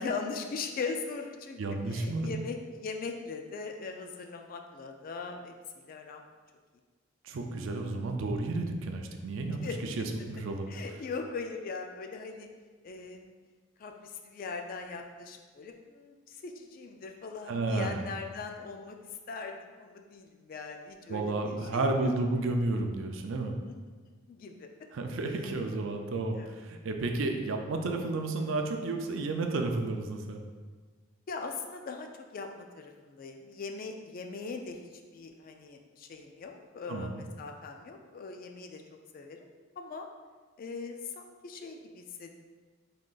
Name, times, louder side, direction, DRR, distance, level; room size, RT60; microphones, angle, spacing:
voice 1, 0.0-1.6 1.9-6.2 9.6-9.8 10.7-12.5 12.8-13.3 13.8-19.0 19.3-22.5 23.6-23.7 24.1-24.7 25.4-25.5 26.3-26.5 31.3-38.8 39.1-39.4 39.8-40.1 40.6-42.4, left 4 dB, 45° left, 4 dB, 0.3 m, -40 dB
voice 2, 1.6-2.3 7.2-9.7 10.0-10.7 17.5-18.0 21.1-23.5 24.9-30.4 36.9-37.3, right 2 dB, 65° right, 4 dB, 0.4 m, -32 dB
3.7 x 2.5 x 3.7 m, 1.4 s
head